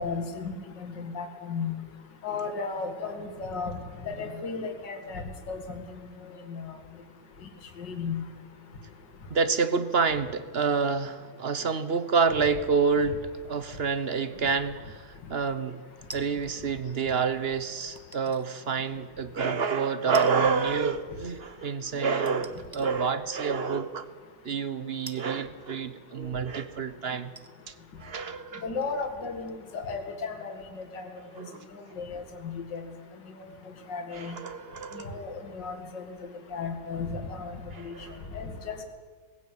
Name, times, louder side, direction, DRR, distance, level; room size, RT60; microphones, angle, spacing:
voice 1, 0.0-1.8 2.2-3.7 4.1-5.6 6.5-6.7 7.8-8.2 28.6-30.5 30.9-31.1 32.0-32.8 33.9-34.4 35.0-36.1 36.5-37.9 38.3-38.8, left 4 dB, 60° left, 5 dB, 2.7 m, -34 dB
voice 2, 9.3-15.8 16.1-24.1 24.4-27.3 27.7-27.8 28.0-28.6 31.4-31.7 34.1-35.2 37.7-38.3, right 5 dB, 45° right, 12 dB, 0.8 m, -28 dB
sound 1, 16.1-16.6 18.0-18.5 19.0-19.1 20.1-20.6 20.9-21.0 22.2-22.9 23.7-23.9 25.1-26.2 26.8-26.9 27.3-29.8 30.0-30.1, right 2 dB, 20° right, 0.5 m, -47 dB
19.5 x 16.0 x 9.0 m, 1.5 s
omnidirectional pair, 2.2 m